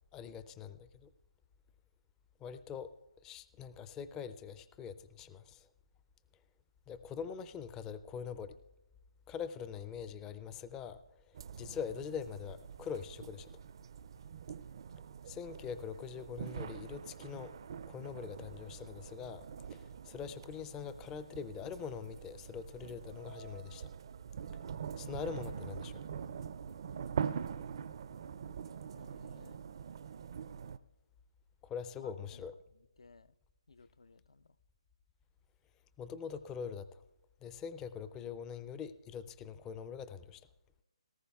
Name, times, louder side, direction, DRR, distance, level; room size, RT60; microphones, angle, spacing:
voice 1, 0.1-1.1 2.4-2.9 3.2-5.7 6.9-8.5 9.3-13.5 15.2-17.5 17.9-19.4 19.7-23.9 25.0-26.0 31.6-32.5 36.0-37.0 37.4-40.5, left 7 dB, 15° left, 13 dB, 0.4 m, -43 dB
sound 1, 11.3-30.8, right 7 dB, 50° right, 0.4 m, -44 dB
voice 2, 28.9-29.6 32.0-33.3 33.7-34.6, left 3 dB, 75° left, 16 dB, 0.4 m, -59 dB
18.5 x 14.5 x 2.3 m, 1.0 s
figure-of-eight pair, 145°, 3 cm